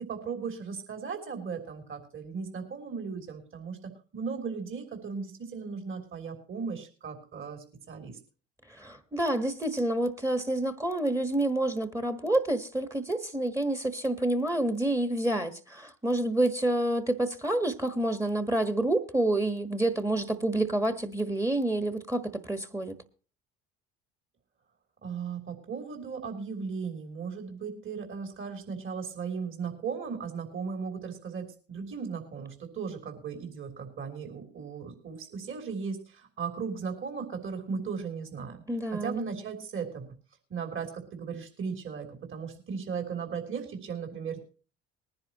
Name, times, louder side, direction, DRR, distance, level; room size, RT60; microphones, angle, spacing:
voice 1, 0.0-8.2 25.0-38.6 39.0-40.1 40.5-44.4, right 5 dB, 45° right, 3.3 m, -37 dB
voice 2, 8.7-23.0 38.7-39.3, right 1 dB, 10° right, 1.4 m, -28 dB
20.0 x 10.5 x 3.0 m
supercardioid pair, 70°, 30 cm